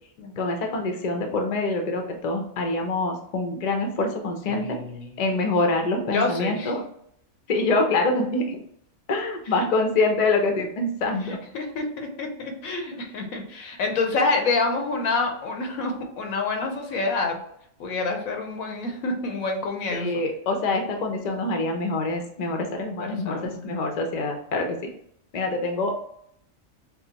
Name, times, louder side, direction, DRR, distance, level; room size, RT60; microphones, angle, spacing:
voice 1, 0.4-4.8 5.2-6.8 7.5-8.6 9.1-11.4 12.9-13.0 19.9-24.8 25.3-26.0, left 2 dB, 45° left, 3 dB, 0.6 m, -25 dB
voice 2, 4.5-5.1 6.0-6.7 11.2-17.4 17.8-20.2 23.0-23.7, left 3 dB, 85° left, 3 dB, 1.2 m, -28 dB
5.8 x 2.0 x 2.8 m, 0.71 s
omnidirectional pair, 1.4 m